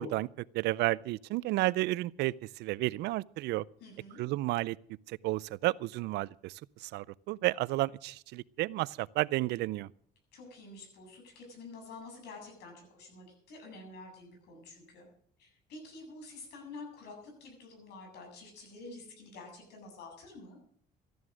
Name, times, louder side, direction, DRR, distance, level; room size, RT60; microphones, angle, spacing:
voice 1, 0.0-3.6 4.2-4.8 5.1-9.9, right 17 dB, 80° right, 0.5 m, -32 dB
voice 2, 3.8-4.2 10.3-15.1 15.4-20.6, left 3 dB, 80° left, 7.7 m, -49 dB
14.5 x 11.0 x 6.2 m
cardioid pair, 110°, 17 cm